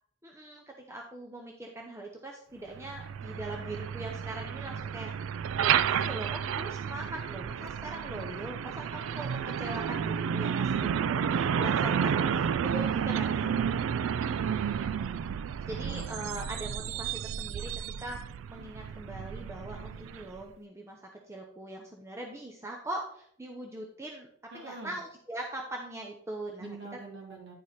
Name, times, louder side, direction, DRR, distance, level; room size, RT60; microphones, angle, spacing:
voice 1, 0.2-5.1 5.6-13.8 14.2-14.9 15.7-17.7 18.0-18.2 18.5-24.3 24.5-26.8, right 1 dB, 15° right, 0 dB, 0.7 m, -41 dB
Truck, 2.7-20.4, right 7 dB, 70° right, 0.3 m, -31 dB
voice 2, 12.9-14.2 24.5-25.0 26.6-27.5, right 2 dB, 55° right, -1 dB, 2.2 m, -45 dB
9.9 x 4.7 x 4.1 m, 0.64 s
head